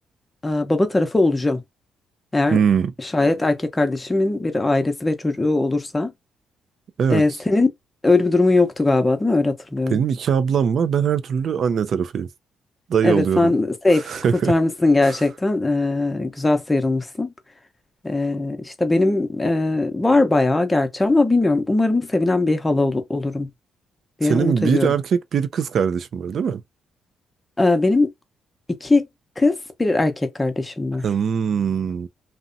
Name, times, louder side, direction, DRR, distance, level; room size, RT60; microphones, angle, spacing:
voice 1, 0.4-1.6 2.3-2.6 3.0-6.1 7.1-7.7 8.0-10.0 13.0-14.1 14.5-17.3 18.0-23.5 24.2-24.9 27.6-28.1 28.7-29.1 29.4-31.0, left 2 dB, 15° left, 0.7 m, -20 dB
voice 2, 2.5-2.9 7.0-7.2 9.9-12.3 12.9-13.5 13.9-14.5 15.0-15.2 24.2-26.6 31.0-32.1, right 7 dB, 55° right, 0.4 m, -21 dB
2.6 x 2.1 x 2.5 m
cardioid pair, 90°, 0 cm